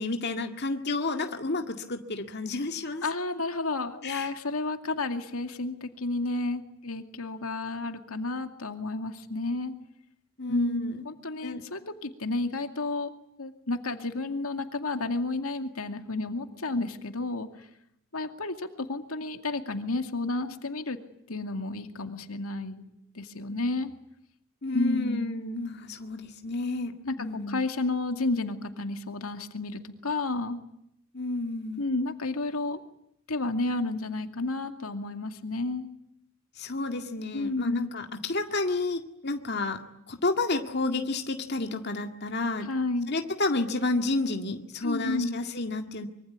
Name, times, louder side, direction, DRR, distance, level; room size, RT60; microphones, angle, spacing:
voice 1, 0.0-3.0 4.0-4.3 10.4-11.1 11.4-11.6 24.6-26.9 27.2-27.6 31.1-31.9 36.6-39.8 40.1-42.7 43.1-46.1, left 2 dB, 50° left, 5 dB, 2.0 m, -30 dB
voice 2, 3.0-9.7 10.5-13.1 13.4-17.7 18.1-21.0 21.3-23.9 24.7-25.3 27.0-27.1 27.5-30.6 31.8-32.8 33.3-35.9 37.3-37.9 42.7-43.1 44.8-45.3, left 2 dB, 90° left, 7 dB, 2.4 m, -31 dB
25.0 x 24.0 x 9.5 m, 0.76 s
head